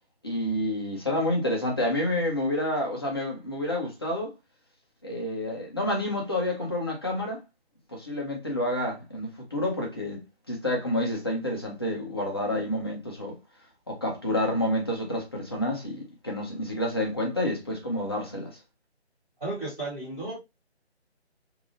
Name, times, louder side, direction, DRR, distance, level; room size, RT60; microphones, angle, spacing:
voice 1, 0.2-4.3 5.0-7.4 7.9-10.2 10.5-13.4 13.9-18.5, left 1 dB, 20° left, 0.6 m, -29 dB
voice 2, 19.4-20.4, right 2 dB, 5° right, 0.8 m, -33 dB
3.3 x 2.6 x 2.4 m
figure-of-eight pair, 155°, 34 cm